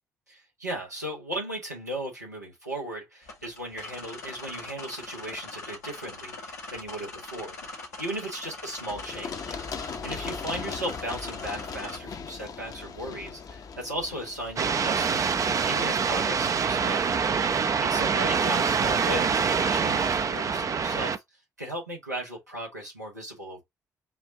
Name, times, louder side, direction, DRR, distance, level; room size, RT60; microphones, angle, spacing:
voice 1, 0.3-9.6 10.0-17.1 17.8-21.2 21.6-23.6, right 1 dB, 90° right, 1.3 m, -36 dB
sound 1, 3.2-12.0, left 2 dB, 80° left, 1.1 m, -41 dB
Run, 8.9-16.5, left 6 dB, 45° left, 0.8 m, -39 dB
sound 2, 14.6-21.2, right 6 dB, 40° right, 0.6 m, -25 dB
5.8 x 2.5 x 2.7 m
figure-of-eight pair, 40°, 9 cm